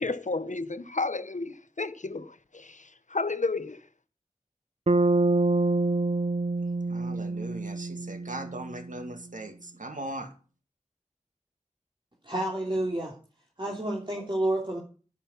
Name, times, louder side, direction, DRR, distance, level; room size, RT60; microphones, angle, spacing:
voice 1, 0.0-3.8, left 3 dB, 75° left, 1.0 m, -32 dB
Bass guitar, 4.9-8.9, right 2 dB, 55° right, 0.7 m, -26 dB
voice 2, 6.9-10.3, right 1 dB, 90° right, 2.1 m, -39 dB
voice 3, 12.2-13.1 13.6-14.8, right 1 dB, 40° right, 3.1 m, -29 dB
11.0 x 10.5 x 5.6 m
wide cardioid pair, 45°, 13 cm